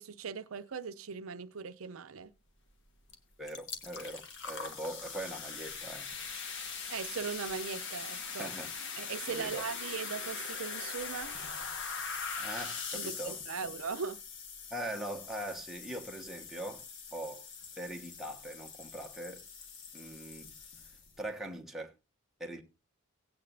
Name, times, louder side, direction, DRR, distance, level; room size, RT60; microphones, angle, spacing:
voice 1, 0.0-2.3 6.9-8.5 9.0-11.3 12.9-14.2, right 6 dB, 65° right, 0.6 m, -39 dB
sound 1, 3.1-3.2 3.5-21.2, left 5 dB, 60° left, 1.6 m, -42 dB
voice 2, 3.4-6.1 8.4-8.7 9.3-9.6 12.3-13.7 14.7-16.8 17.1-17.5 17.8-19.4 19.9-20.5 21.2-21.9 22.4-22.6, right 1 dB, ahead, 1.3 m, -41 dB
17.5 x 8.7 x 2.6 m
head